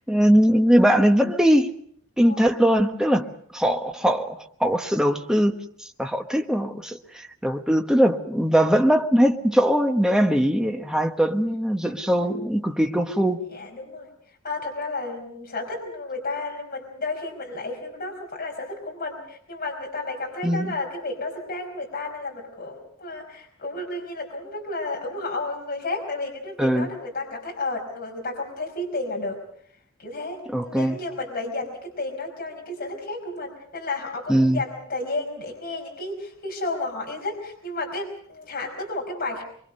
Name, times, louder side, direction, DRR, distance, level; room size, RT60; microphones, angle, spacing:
voice 1, 0.1-1.7 2.2-5.5 5.8-13.4 20.4-20.7 26.6-26.9 30.5-31.0 34.3-34.6, equal, 5° right, 1.2 m, -21 dB
voice 2, 2.2-2.6 13.5-14.1 14.4-29.4 30.0-39.4, left 2 dB, 45° left, 5.0 m, -32 dB
24.5 x 24.0 x 5.4 m
head